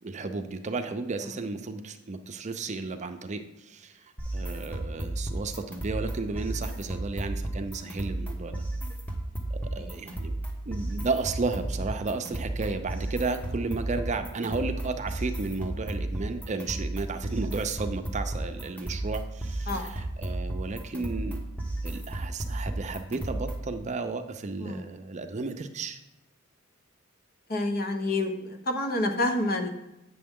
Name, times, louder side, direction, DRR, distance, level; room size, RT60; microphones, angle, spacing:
voice 1, 0.0-8.6 9.5-10.4 10.7-21.4 21.8-26.0, right 3 dB, 35° right, 7 dB, 0.5 m, -33 dB
sound 1, 4.2-23.8, right 1 dB, 10° left, 1.0 m, -33 dB
voice 2, 27.5-29.7, left 2 dB, 50° left, 4 dB, 1.0 m, -29 dB
8.6 x 6.9 x 3.6 m, 0.93 s
head